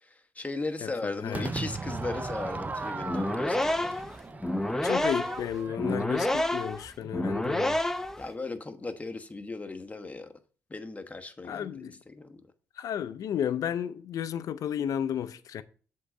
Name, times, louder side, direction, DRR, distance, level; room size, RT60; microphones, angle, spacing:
voice 1, 0.0-3.9 8.2-10.3 10.7-12.4, left 3 dB, 25° left, 1.1 m, -37 dB
voice 2, 0.8-1.5 4.8-7.8 11.4-12.0 12.8-15.6, left 9 dB, 70° left, 0.6 m, -33 dB
Crowd / Fireworks, 1.3-6.6, right 3 dB, 25° right, 0.6 m, -37 dB
sound 1, 3.0-8.3, left 1 dB, 5° left, 0.7 m, -29 dB
7.8 x 3.8 x 6.3 m
supercardioid pair, 65°, 6 cm